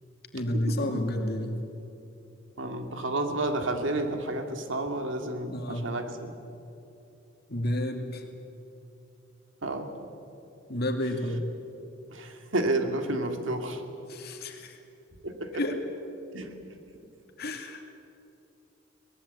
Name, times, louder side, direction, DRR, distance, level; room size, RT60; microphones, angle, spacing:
voice 1, 0.3-1.6 5.5-5.9 7.5-8.3 10.7-11.5 14.1-14.8 15.5-15.8 17.4-17.9, left 1 dB, 50° left, 4 dB, 2.5 m, -30 dB
voice 2, 2.6-6.3 9.6-9.9 12.1-13.8 15.2-15.6 16.3-16.5, right 2 dB, 70° right, 6 dB, 2.3 m, -30 dB
22.5 x 19.5 x 8.3 m, 2.9 s
head